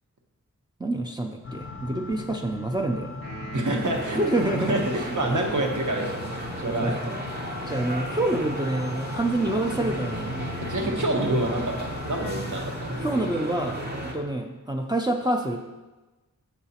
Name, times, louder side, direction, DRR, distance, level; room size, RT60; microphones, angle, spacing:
voice 1, 0.8-3.2 4.1-4.8 6.8-7.0 7.7-10.3 13.0-15.7, right 1 dB, 15° right, 1 dB, 0.4 m, -27 dB
sound 1, 1.4-13.2, left 3 dB, 40° left, 0.5 m, -39 dB
sound 2, 3.2-6.6, right 2 dB, 90° right, 1.5 m, -41 dB
voice 2, 3.5-4.2 4.6-7.0 10.7-12.9, right 1 dB, 70° right, 1 dB, 1.0 m, -27 dB
sound 3, 3.8-14.1, right 1 dB, 35° right, 0.8 m, -34 dB
7.0 x 4.8 x 2.8 m, 1.2 s
wide cardioid pair, 90°, 31 cm